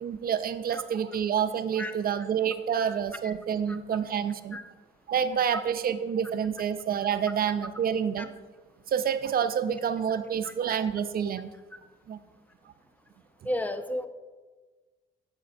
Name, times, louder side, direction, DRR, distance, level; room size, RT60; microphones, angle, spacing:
voice 1, 0.0-4.6 5.1-8.3 8.9-11.5 12.1-12.2, right 8 dB, 50° right, 11 dB, 0.4 m, -28 dB
voice 2, 13.4-14.1, left 1 dB, 10° left, 9 dB, 0.5 m, -33 dB
8.1 x 7.5 x 2.5 m, 1.3 s
cardioid pair, 90°, 20 cm